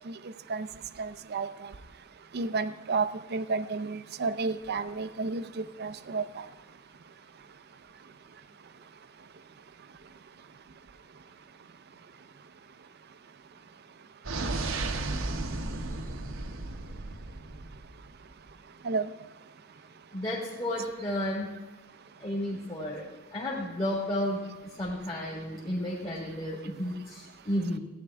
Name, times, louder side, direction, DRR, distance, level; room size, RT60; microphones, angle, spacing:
voice 1, 1.0-1.7 2.3-6.4 18.8-19.1, right 4 dB, 50° right, 13 dB, 0.5 m, -31 dB
sound 1, 14.2-18.1, right 2 dB, 80° right, 0.9 m, -34 dB
voice 2, 20.1-21.5 22.2-23.0 23.3-24.4 24.8-27.8, left 1 dB, 25° left, -5 dB, 1.7 m, -32 dB
15.0 x 9.5 x 3.5 m, 1.2 s
head